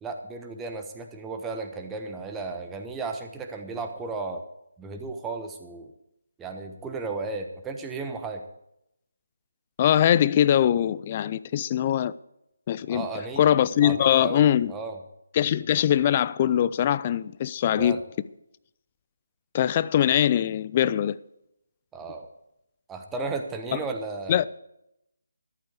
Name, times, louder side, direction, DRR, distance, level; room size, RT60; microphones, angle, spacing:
voice 1, 0.0-4.4 4.8-5.9 6.4-8.4 12.9-13.5 13.8-15.0 17.8-18.0 21.9-22.3 22.9-24.4, right 3 dB, 10° right, 1.1 m, -34 dB
voice 2, 9.8-12.1 12.7-13.1 13.4-14.7 15.3-18.0 19.5-21.2 23.7-23.8 24.3-24.5, left 10 dB, 25° left, 0.4 m, -22 dB
13.5 x 11.0 x 4.9 m
figure-of-eight pair, 150°, 0 cm